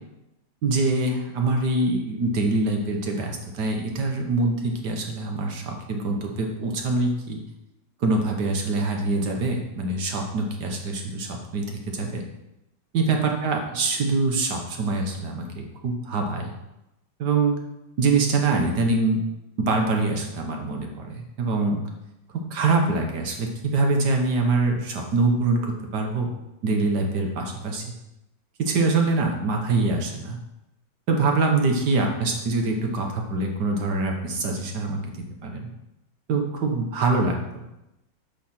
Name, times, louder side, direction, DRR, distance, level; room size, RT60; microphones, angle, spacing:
voice 1, 0.6-7.4 8.0-12.2 12.9-16.5 17.2-17.5 18.0-19.2 19.6-21.8 22.5-26.3 26.6-27.8 28.6-30.4 31.1-35.7 36.3-37.6, right 3 dB, 55° right, 2 dB, 1.5 m, -24 dB
8.6 x 5.8 x 4.3 m, 0.93 s
omnidirectional pair, 2.3 m